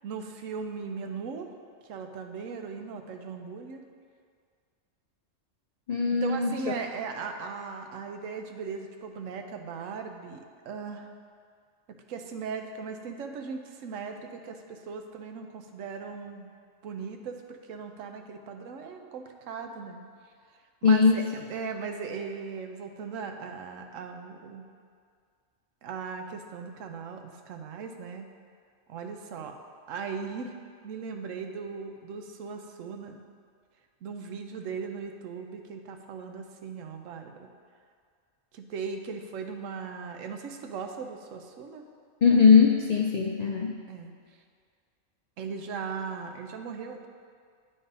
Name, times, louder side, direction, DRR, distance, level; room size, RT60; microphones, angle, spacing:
voice 1, 0.0-1.5 1.9-3.8 6.2-11.1 12.1-16.5 16.8-20.0 20.8-24.6 25.8-28.3 28.9-29.6 29.9-30.5 30.8-33.2 34.0-37.5 38.5-41.8 43.9-44.1 45.4-47.1, right 5 dB, 85° right, 5 dB, 1.0 m, -38 dB
voice 2, 5.9-6.6 20.8-21.2 42.2-43.8, left 5 dB, 85° left, 0 dB, 0.3 m, -20 dB
10.5 x 3.8 x 4.0 m, 2.1 s
omnidirectional pair, 1.3 m